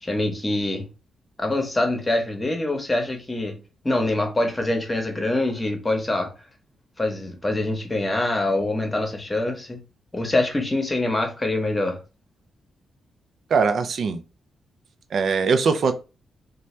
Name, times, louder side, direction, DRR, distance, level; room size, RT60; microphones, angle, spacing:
voice 1, 0.0-0.9 1.4-3.6 3.8-6.3 7.0-9.8 10.1-12.0, left 2 dB, 20° left, 0.9 m, -24 dB
voice 2, 13.5-14.2 15.1-15.9, right 5 dB, 65° right, 0.4 m, -21 dB
2.7 x 2.2 x 3.1 m
cardioid pair, 80°, 0 cm